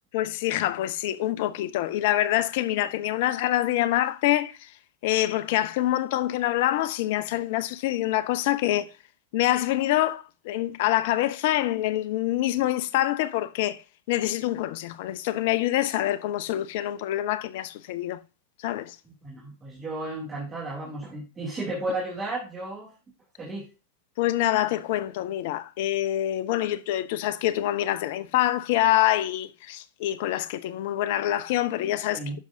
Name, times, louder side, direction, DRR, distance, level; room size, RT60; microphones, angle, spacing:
voice 1, 0.1-4.7 5.0-8.9 9.3-13.8 14.1-18.2 18.6-19.0 24.2-32.4, left 14 dB, 50° left, 0.6 m, -26 dB
voice 2, 19.0-22.9 23.4-23.7 32.1-32.4, right 2 dB, 20° right, 2.6 m, -33 dB
11.0 x 6.1 x 2.7 m
figure-of-eight pair, 90°, 0 cm